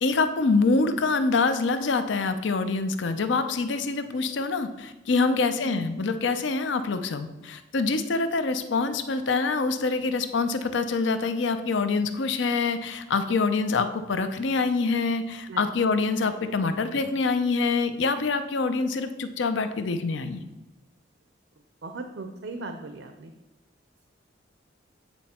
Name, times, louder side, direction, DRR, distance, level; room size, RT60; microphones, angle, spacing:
voice 1, 0.0-20.4, left 4 dB, 75° left, 9 dB, 0.6 m, -25 dB
voice 2, 21.8-23.3, right 2 dB, 75° right, 6 dB, 0.6 m, -38 dB
8.8 x 4.2 x 4.3 m, 1.1 s
head